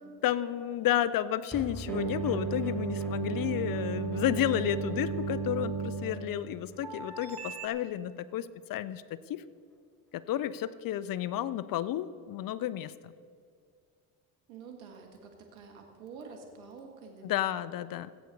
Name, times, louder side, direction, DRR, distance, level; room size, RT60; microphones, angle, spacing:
voice 1, 0.2-9.4 10.1-13.1 17.2-18.1, left 12 dB, 55° left, 17 dB, 0.7 m, -32 dB
sound 1, 1.5-7.9 8.2-8.3 8.6-8.7, right 2 dB, 5° left, 3.5 m, -49 dB
sound 2, 1.9-7.7, right 5 dB, 60° right, 1.5 m, -34 dB
voice 2, 14.5-17.7, right 5 dB, 85° right, 3 dB, 1.6 m, -48 dB
16.0 x 8.3 x 6.6 m, 2.1 s
hypercardioid pair, 65°, 42 cm